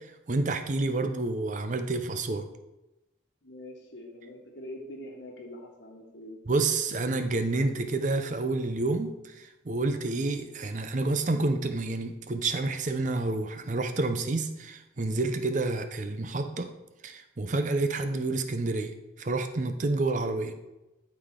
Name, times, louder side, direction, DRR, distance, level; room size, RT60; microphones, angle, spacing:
voice 1, 0.3-2.5 6.5-16.7 17.0-20.5, right 2 dB, 40° right, 7 dB, 0.5 m, -29 dB
voice 2, 3.4-6.4, left 1 dB, 65° left, 2 dB, 1.3 m, -44 dB
11.5 x 4.1 x 3.7 m, 0.99 s
head